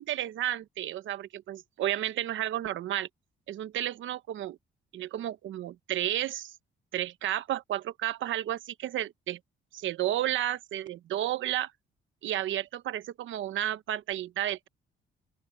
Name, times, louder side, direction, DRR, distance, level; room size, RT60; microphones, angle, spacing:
voice 1, 0.0-3.1 3.5-4.6 4.9-6.5 6.9-9.4 9.7-11.7 12.2-14.7, right 13 dB, 75° right, 1.1 m, -32 dB
open air
cardioid pair, 90°, 20 cm